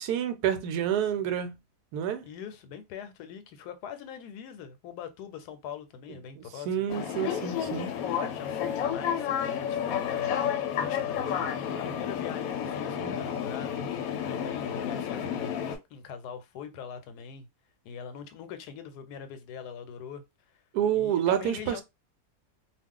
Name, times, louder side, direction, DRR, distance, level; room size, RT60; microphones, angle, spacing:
voice 1, 0.0-1.6 1.9-2.3 6.4-7.9 13.0-13.2 20.7-21.8, right 9 dB, 80° right, 1.1 m, -29 dB
voice 2, 2.2-6.7 7.9-13.8 14.3-17.5 17.8-20.2 20.9-21.8, left 7 dB, 90° left, 1.2 m, -42 dB
sound 1, 6.9-15.8, left 8 dB, 70° left, 1.0 m, -31 dB
2.4 x 2.4 x 3.6 m
omnidirectional pair, 1.7 m